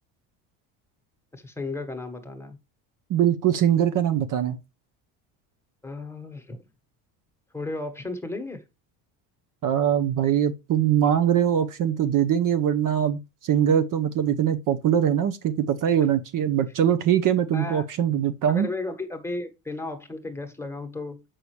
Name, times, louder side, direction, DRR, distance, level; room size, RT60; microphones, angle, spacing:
voice 1, 1.3-2.6 5.8-6.6 7.5-8.6 17.5-17.9 18.5-21.2, left 2 dB, 5° left, 1.4 m, -34 dB
voice 2, 3.1-4.6 9.6-18.7, right 9 dB, 50° right, 0.8 m, -22 dB
6.7 x 5.8 x 3.2 m
supercardioid pair, 100°, 42 cm